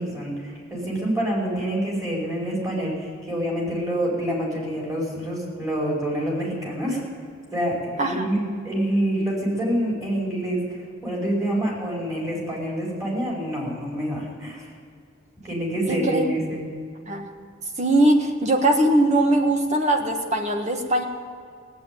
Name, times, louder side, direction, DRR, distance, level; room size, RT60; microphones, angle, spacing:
voice 1, 0.0-7.0 7.5-8.4 8.6-14.7 15.4-16.6, right 1 dB, 15° right, -4 dB, 5.0 m, -27 dB
voice 2, 8.0-8.4 15.9-16.3 17.1-17.3 17.8-21.0, right 1 dB, 35° right, 4 dB, 1.5 m, -21 dB
17.0 x 8.8 x 9.1 m, 2.2 s
head